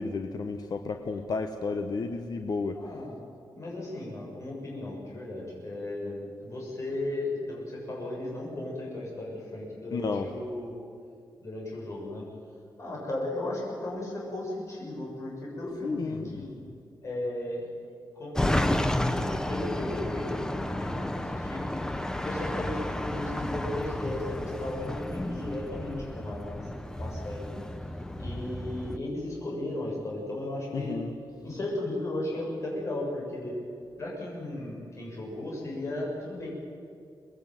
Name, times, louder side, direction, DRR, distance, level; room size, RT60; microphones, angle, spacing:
voice 1, 0.0-2.8 9.9-10.3 15.8-16.4 30.7-31.2, left 4 dB, 55° left, 6 dB, 1.2 m, -32 dB
voice 2, 2.7-10.8 11.4-12.2 12.8-16.5 17.0-17.7 18.1-21.6 22.2-27.6 28.2-30.9 31.4-33.5 34.0-36.5, left 1 dB, 40° left, -3 dB, 7.3 m, -35 dB
sound 1, 18.4-29.0, left 1 dB, 10° left, 0.9 m, -32 dB
24.0 x 20.0 x 9.3 m, 2.2 s
wide cardioid pair, 155°, 8 cm